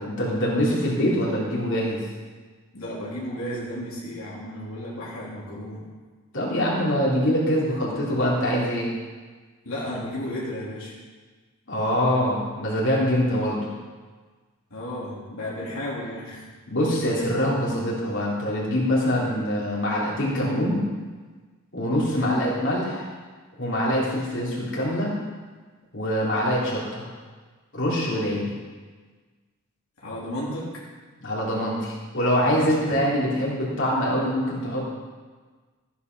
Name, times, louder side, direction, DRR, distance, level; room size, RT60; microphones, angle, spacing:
voice 1, 0.0-2.0 6.3-8.9 11.7-13.6 16.7-20.8 21.7-23.1 23.6-25.1 25.9-27.1 27.7-28.5 31.2-34.9, equal, 55° left, -6 dB, 3.6 m, -24 dB
voice 2, 2.7-5.8 9.6-11.0 14.7-16.4 22.2-22.4 30.0-30.7 32.5-33.0, left 1 dB, 75° left, -7 dB, 3.4 m, -33 dB
14.5 x 9.7 x 5.5 m, 1.4 s
head